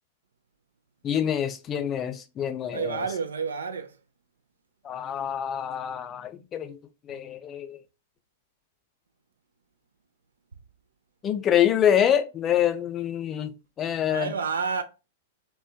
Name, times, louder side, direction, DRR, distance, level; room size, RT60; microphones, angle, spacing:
voice 1, 1.0-3.0 4.8-6.8 7.1-7.8 11.2-13.5 13.8-14.3, left 9 dB, 25° left, 0.3 m, -26 dB
voice 2, 2.7-3.9 14.1-14.8, right 5 dB, 75° right, 0.4 m, -29 dB
2.5 x 2.2 x 2.2 m
figure-of-eight pair, 105°, 0 cm